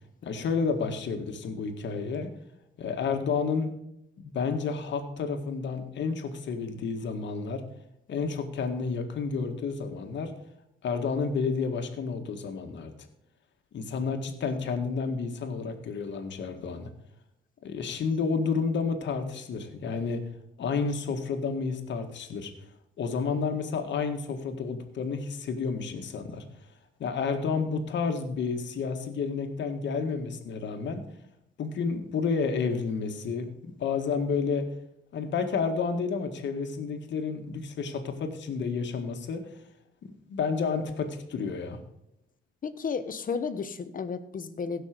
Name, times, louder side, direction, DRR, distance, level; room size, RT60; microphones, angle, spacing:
voice 1, 0.2-2.3 2.8-3.7 4.2-7.6 8.1-10.3 10.8-12.9 13.7-16.9 17.6-20.3 20.6-22.5 23.0-26.5 27.0-31.0 31.6-33.5 33.8-34.7 35.1-39.5 40.3-41.8, left 5 dB, 65° left, 5 dB, 1.8 m, -30 dB
voice 2, 42.6-44.8, left 5 dB, 45° left, 12 dB, 1.1 m, -33 dB
16.0 x 6.1 x 5.1 m, 0.80 s
cardioid pair, 90°, 20 cm